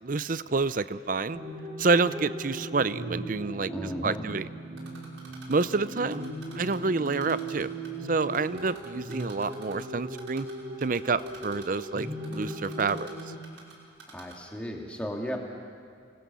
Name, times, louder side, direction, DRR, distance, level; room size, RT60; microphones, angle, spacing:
voice 1, 0.0-1.4 1.8-4.5 5.5-7.7 8.1-10.5 10.8-13.1, right 4 dB, 45° right, 15 dB, 0.6 m, -28 dB
sound 1, 1.3-13.3, right 1 dB, 30° right, 2.9 m, -38 dB
voice 2, 3.7-4.2 14.1-15.4, equal, 5° left, 0 dB, 2.5 m, -35 dB
Typing, 4.8-6.8 7.1-7.9 8.2-9.8 10.2-10.5 10.8-13.7 14.0-14.3, right 5 dB, 85° right, 5.7 m, -48 dB
29.5 x 20.0 x 7.0 m, 2.2 s
head